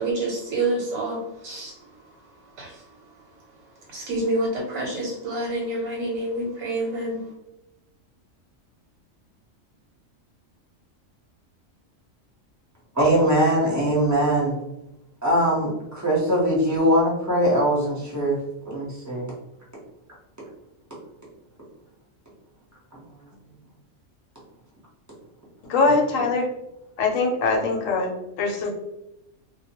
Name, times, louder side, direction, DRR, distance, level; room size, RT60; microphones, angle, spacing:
voice 1, 0.0-3.2 3.9-7.3, right 2 dB, 90° right, -2 dB, 1.0 m, -28 dB
voice 2, 12.9-14.6 15.2-18.4 18.6-19.3 22.9-23.0, equal, 15° right, -6 dB, 0.6 m, -21 dB
voice 3, 25.7-26.5 27.0-28.1 28.4-28.7, left 3 dB, 80° left, 1 dB, 1.0 m, -22 dB
2.2 x 2.2 x 2.8 m, 0.88 s
omnidirectional pair, 1.4 m